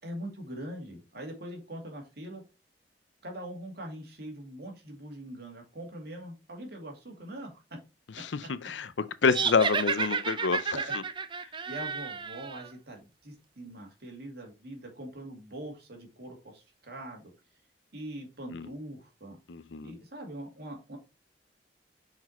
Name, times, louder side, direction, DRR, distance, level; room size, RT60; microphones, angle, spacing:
voice 1, 0.0-2.4 3.2-7.5 10.7-10.9 11.7-17.3 17.9-19.4 19.8-21.0, right 1 dB, 65° right, 2.4 m, -42 dB
voice 2, 8.2-10.8 18.5-18.7 19.5-20.0, left 5 dB, 90° left, 0.6 m, -28 dB
sound 1, 9.3-12.7, right 5 dB, 30° right, 0.5 m, -31 dB
6.1 x 4.9 x 4.3 m
head